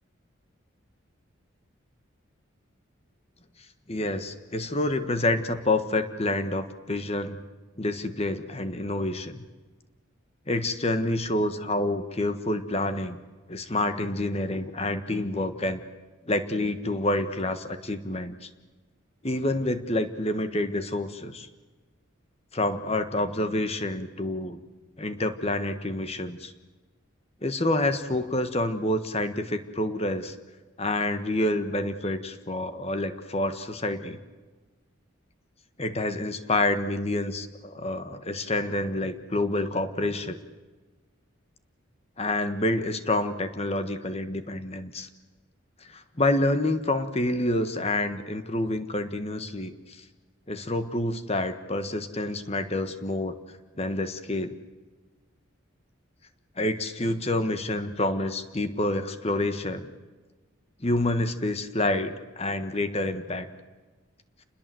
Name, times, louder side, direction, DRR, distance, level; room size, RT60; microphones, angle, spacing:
voice 1, 3.9-7.4 7.8-9.4 10.5-13.2 13.5-15.8 16.2-18.5 19.2-21.5 22.5-24.6 25.0-26.5 27.4-30.3 30.8-34.2 35.8-40.4 42.2-45.1 45.8-50.0 50.5-53.4 53.8-54.5 56.6-59.9 60.8-63.5, left 1 dB, 30° left, 9 dB, 1.5 m, -28 dB
28.5 x 21.0 x 7.8 m, 1.3 s
head